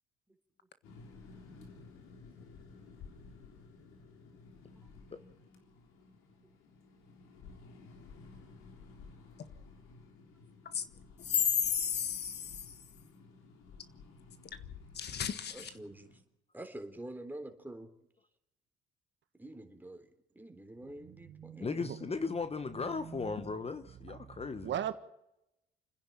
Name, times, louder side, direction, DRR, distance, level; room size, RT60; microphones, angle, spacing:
sound 1, 0.8-16.2, left 4 dB, 80° left, 3.6 m, -54 dB
voice 1, 11.2-12.9 14.9-15.8 23.3-23.5, left 8 dB, 55° left, 1.6 m, -33 dB
voice 2, 15.5-16.1 16.5-17.9 19.3-21.8, right 1 dB, 10° right, 3.7 m, -47 dB
voice 3, 21.0-22.2 22.8-23.4 24.1-24.9, right 10 dB, 60° right, 1.5 m, -41 dB
voice 4, 21.6-24.7, left 4 dB, 30° left, 1.2 m, -37 dB
29.0 x 10.5 x 9.1 m
supercardioid pair, 65°, 21 cm